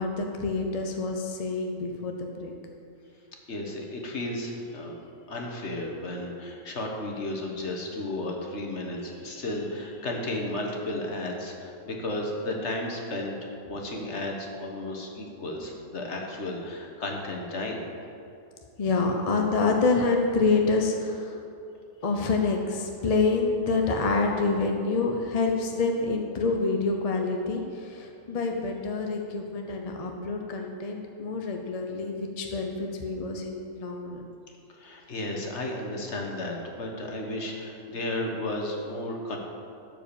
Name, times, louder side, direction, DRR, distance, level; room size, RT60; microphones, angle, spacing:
voice 1, 0.0-2.5 18.8-21.4 22.0-34.2, left 3 dB, 35° left, 2 dB, 0.6 m, -27 dB
voice 2, 3.5-17.9 34.7-39.4, left 1 dB, 50° left, 0 dB, 1.6 m, -33 dB
12.0 x 4.9 x 7.0 m, 2.6 s
omnidirectional pair, 1.5 m